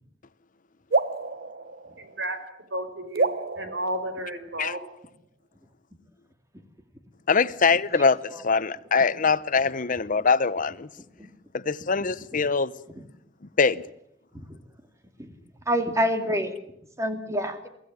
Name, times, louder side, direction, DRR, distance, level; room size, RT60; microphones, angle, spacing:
sound 1, 0.9-2.6 3.1-4.8, right 3 dB, 55° right, 1.0 m, -29 dB
voice 1, 2.0-2.4 2.7-3.3 3.6-4.8, right 1 dB, 75° right, 4.3 m, -32 dB
voice 2, 7.3-10.9 11.5-12.7 13.6-13.8, left 5 dB, 45° left, 0.8 m, -23 dB
voice 3, 7.9-8.4 11.2-11.3 12.3-12.4 12.9-13.0 14.3-14.6 15.2-15.3 15.7-16.6 17.0-17.7, equal, 15° right, 2.4 m, -28 dB
23.5 x 15.5 x 9.5 m
head